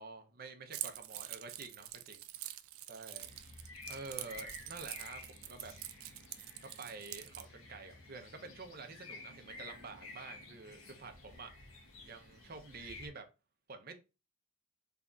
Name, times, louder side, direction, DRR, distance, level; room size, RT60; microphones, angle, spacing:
voice 1, 0.0-2.2 2.9-3.3 3.9-5.7 6.8-11.5 12.0-13.3 13.7-13.9, right 4 dB, 45° right, 0.6 m, -48 dB
Keys jangling, 0.7-7.4, right 14 dB, 85° right, 0.3 m, -45 dB
sound 1, 3.2-13.1, left 3 dB, 85° left, 1.1 m, -53 dB
3.9 x 3.3 x 2.4 m
head